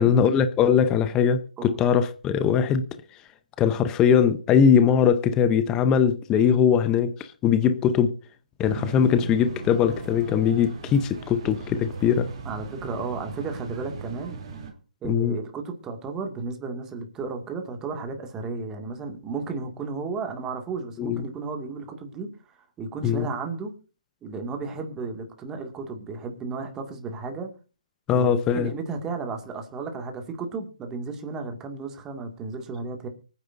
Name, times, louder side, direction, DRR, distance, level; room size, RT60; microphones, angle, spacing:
voice 1, 0.0-2.9 3.6-7.1 7.4-8.1 8.6-12.3 15.0-15.4 21.0-21.2 23.0-23.3 28.1-28.7, left 7 dB, 15° left, 0.7 m, -21 dB
sound 1, 8.6-14.7, right 4 dB, 40° right, 3.0 m, -38 dB
voice 2, 12.4-14.4 15.0-23.7 24.2-27.5 28.1-33.1, right 4 dB, 15° right, 2.1 m, -34 dB
24.0 x 9.6 x 2.6 m
figure-of-eight pair, 150°, 4 cm